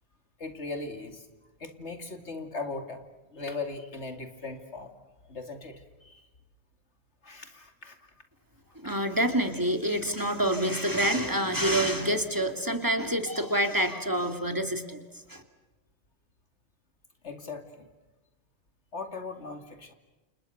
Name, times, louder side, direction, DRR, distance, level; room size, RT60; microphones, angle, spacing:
voice 1, 0.4-1.3 1.6-3.0 3.3-4.9 5.2-6.3 7.2-8.0 17.2-17.9 18.9-19.9, left 3 dB, 90° left, 7 dB, 3.0 m, -39 dB
voice 2, 8.8-15.0 15.3-15.4, right 1 dB, 20° right, 6 dB, 2.5 m, -27 dB
29.5 x 28.5 x 6.7 m, 1.1 s
omnidirectional pair, 1.1 m